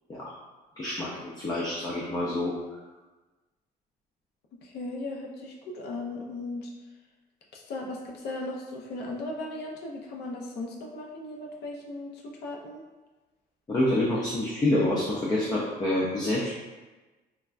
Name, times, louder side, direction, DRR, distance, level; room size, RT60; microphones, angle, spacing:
voice 1, 0.8-2.5 13.7-16.5, left 1 dB, 25° left, -5 dB, 0.4 m, -27 dB
voice 2, 4.6-6.7 7.5-12.8, left 2 dB, 85° left, -1 dB, 0.5 m, -37 dB
3.3 x 2.2 x 2.4 m, 1.2 s
cardioid pair, 150°, 17 cm